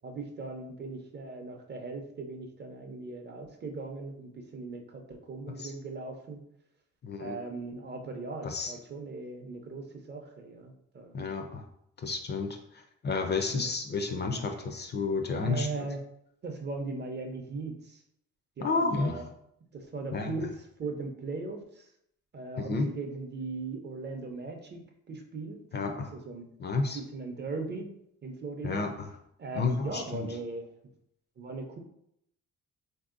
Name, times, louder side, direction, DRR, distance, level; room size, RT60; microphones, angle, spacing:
voice 1, 0.0-6.4 7.2-11.1 13.5-13.7 15.4-16.0 16.4-17.8 18.6-19.2 19.7-20.5 20.8-21.6 22.3-25.6 26.3-26.5 26.9-28.9 29.4-30.6 31.4-31.8, right 3 dB, 35° right, 4 dB, 0.5 m, -38 dB
voice 2, 7.0-7.4 8.4-8.8 11.1-11.6 12.0-15.9 18.6-19.3 20.1-20.5 22.6-22.9 25.7-26.1 26.6-27.0 28.6-29.2 29.5-30.4, left 4 dB, 35° left, 4 dB, 0.4 m, -31 dB
3.2 x 2.7 x 2.4 m, 0.75 s
cardioid pair, 90°, 30 cm